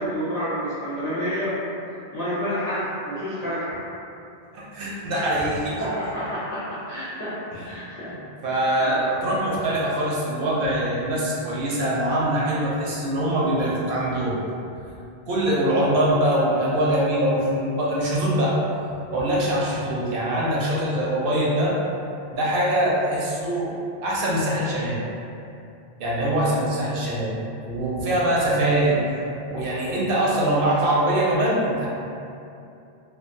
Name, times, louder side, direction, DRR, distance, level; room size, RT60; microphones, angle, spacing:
voice 1, 0.0-1.6 2.1-3.8 5.8-7.4 7.6-8.1 8.6-9.0 9.5-9.6 28.9-29.0, equal, 50° left, -13 dB, 0.5 m, -29 dB
voice 2, 4.5-5.8 7.5-7.6 8.4-14.3 15.3-18.6 19.1-21.8 22.3-23.7 24.0-25.0 26.0-27.4 27.6-29.0 29.5-31.9, right 1 dB, 65° right, -6 dB, 0.7 m, -23 dB
2.2 x 2.2 x 2.5 m, 2.6 s
omnidirectional pair, 1.1 m